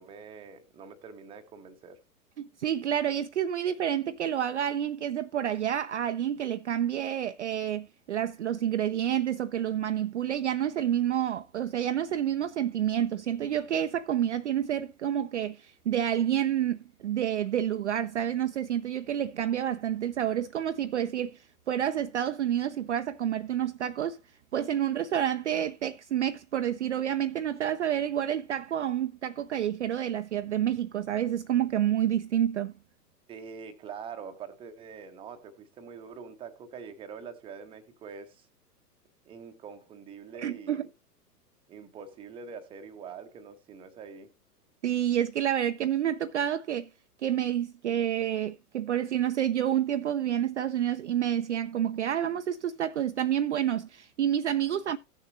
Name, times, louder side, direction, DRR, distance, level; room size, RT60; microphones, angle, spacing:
voice 1, 0.0-2.0 33.3-38.5 39.3-40.8 41.7-44.3, right 6 dB, 10° right, 0.8 m, -44 dB
voice 2, 2.4-24.2 24.5-32.7 40.3-40.9 44.8-46.9 47.2-55.0, right 10 dB, 50° right, 0.5 m, -29 dB
16.5 x 6.7 x 2.6 m
figure-of-eight pair, 110°, 48 cm